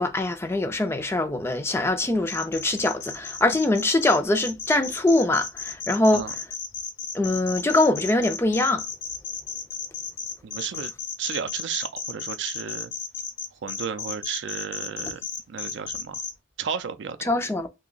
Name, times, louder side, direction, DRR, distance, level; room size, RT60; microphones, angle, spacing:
voice 1, 0.0-6.2 7.1-8.8 17.3-17.7, left 2 dB, 15° left, 0.4 m, -23 dB
sound 1, 2.3-16.3, left 6 dB, 85° left, 0.7 m, -34 dB
voice 2, 10.4-10.9 11.2-12.9 13.6-15.2 15.5-16.2 16.6-17.3, right 7 dB, 75° right, 0.4 m, -33 dB
2.7 x 2.1 x 3.9 m
head